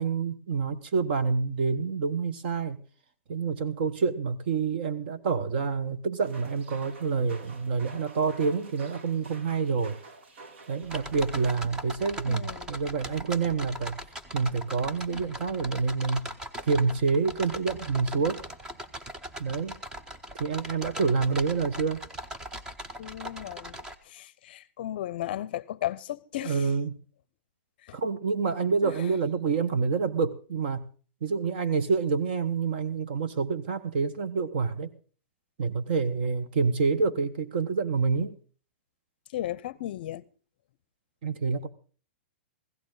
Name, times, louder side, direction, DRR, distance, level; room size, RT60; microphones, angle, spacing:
voice 1, 0.0-2.8 3.3-10.0 10.7-14.0 14.3-16.3 16.6-18.4 19.4-19.8 20.4-22.0 26.4-26.9 27.9-30.8 31.2-34.9 35.6-38.3 41.2-41.7, right 5 dB, 45° right, 1.2 m, -27 dB
sound 1, 6.2-11.5, right 3 dB, 65° right, 1.7 m, -49 dB
sound 2, 10.8-23.9, equal, 10° right, 0.7 m, -40 dB
voice 2, 12.3-12.8 15.1-15.2 23.0-26.6 27.9-28.0 28.8-28.9 39.3-40.2, left 13 dB, 45° left, 0.6 m, -35 dB
16.0 x 14.5 x 3.9 m
hypercardioid pair, 170°, 7 cm